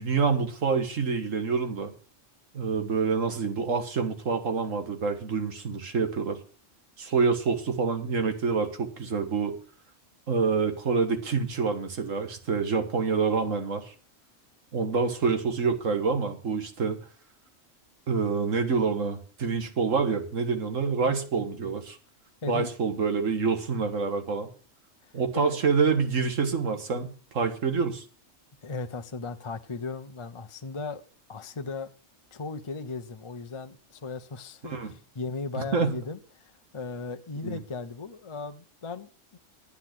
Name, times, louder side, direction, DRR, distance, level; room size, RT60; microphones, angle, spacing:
voice 1, 0.0-1.9 2.5-6.4 7.0-9.5 10.3-13.9 14.7-17.0 18.1-22.0 22.5-24.5 25.1-28.0 34.6-34.9 35.6-36.0 37.4-37.6, right 5 dB, 80° right, 1.9 m, -27 dB
voice 2, 21.0-21.7 22.4-22.7 25.0-25.6 28.6-31.0 31.3-31.9 32.3-39.4, left 3 dB, 30° left, 0.7 m, -37 dB
10.5 x 9.5 x 6.0 m
omnidirectional pair, 1.3 m